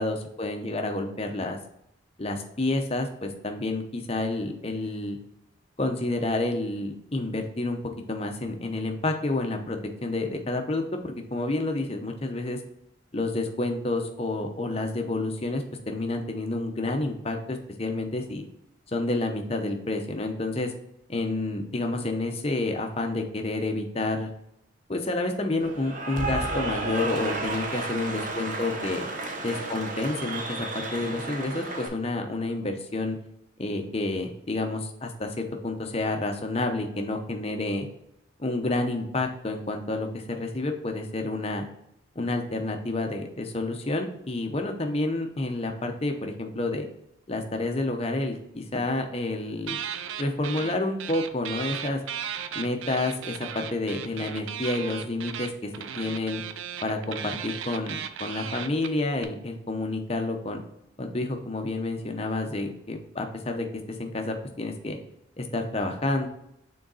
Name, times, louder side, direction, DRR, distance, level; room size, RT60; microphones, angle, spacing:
voice 1, 0.0-1.6 2.2-5.2 5.8-7.8 8.1-12.6 13.1-18.4 18.9-20.7 21.1-24.3 24.9-29.1 29.4-33.2 33.6-37.9 38.4-41.6 42.2-46.9 47.3-49.8 50.2-52.0 52.5-55.7 56.0-56.4 56.8-60.6 61.0-63.7 64.0-65.0 65.4-66.3, left 2 dB, 30° left, 4 dB, 0.7 m, -29 dB
Cheering / Applause, 25.6-31.9, right 2 dB, 40° right, 0.8 m, -32 dB
sound 1, 49.6-50.7 51.0-59.2, right 8 dB, 75° right, 0.5 m, -36 dB
6.3 x 3.9 x 4.0 m, 0.79 s
head